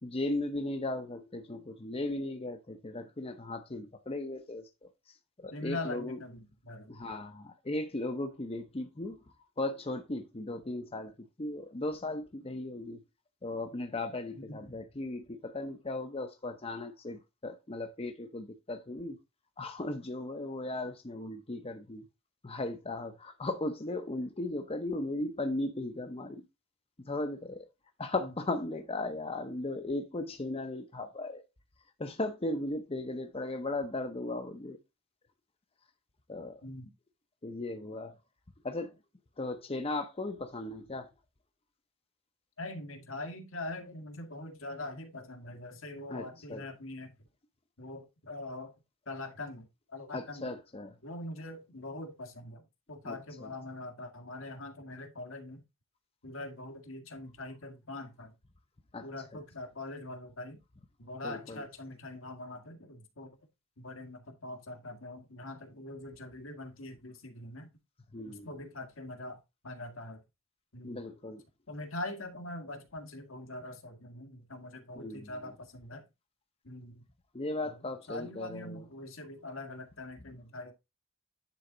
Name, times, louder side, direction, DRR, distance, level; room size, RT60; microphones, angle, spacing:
voice 1, 0.0-4.7 5.1-6.2 6.9-9.2 9.6-11.1 11.4-13.0 13.4-19.2 19.6-22.0 22.4-26.4 27.0-27.7 28.0-31.4 32.0-34.8 36.3-36.6 37.4-38.2 38.6-38.9 39.4-41.1 46.1-46.6 50.1-50.9 53.0-53.5 58.9-59.1 61.2-61.6 68.1-68.5 70.8-71.4 75.0-75.3 77.3-78.8, left 2 dB, 30° left, 0.8 m, -37 dB
voice 2, 5.5-6.9 14.3-14.8 28.2-28.3 36.6-36.9 42.6-47.1 47.8-48.7 49.1-50.5 51.0-55.6 56.2-58.3 59.0-60.6 61.0-63.4 63.8-67.7 68.2-70.2 70.7-71.0 71.7-76.0 76.6-77.0 77.6-77.7 78.1-80.7, left 2 dB, 75° left, 1.8 m, -43 dB
10.0 x 4.2 x 3.9 m
head